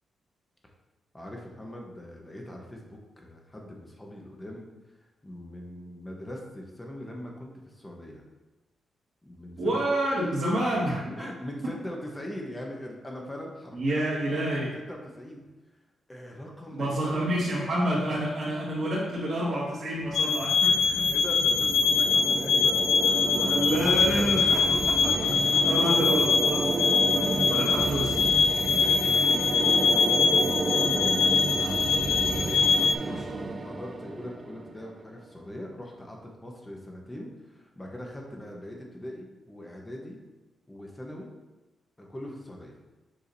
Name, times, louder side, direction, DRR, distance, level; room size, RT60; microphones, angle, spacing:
voice 1, 1.1-4.7 5.2-8.2 9.2-9.8 11.2-14.0 14.3-15.4 16.1-17.4 18.1-18.2 18.8-18.9 20.1-24.7 25.0-25.3 25.8-25.9 26.8-27.9 28.7-31.2 31.6-40.2 40.7-41.3 42.0-42.7, left 1 dB, 10° left, 0 dB, 1.0 m, -41 dB
voice 2, 9.6-11.0 13.7-14.7 16.7-20.8 23.0-24.5 25.6-26.6 27.1-28.1 33.0-33.5, right 1 dB, 55° right, -10 dB, 2.0 m, -28 dB
sound 1, 20.0-35.0, right 3 dB, 25° right, 0.5 m, -31 dB
sound 2, 20.1-32.9, left 5 dB, 65° left, 0.3 m, -24 dB
7.0 x 4.9 x 2.7 m, 1.2 s
cardioid pair, 125°, 0 cm